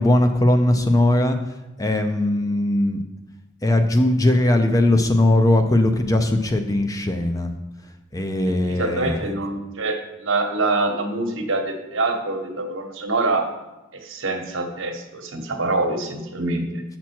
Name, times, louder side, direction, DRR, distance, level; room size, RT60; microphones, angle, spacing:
voice 1, 0.0-3.0 3.6-7.5 8.1-9.2, left 1 dB, 15° left, 6 dB, 0.5 m, -19 dB
voice 2, 8.6-13.4 13.9-16.8, right 2 dB, 80° right, 4 dB, 1.1 m, -25 dB
7.3 x 6.0 x 4.4 m, 1.0 s
head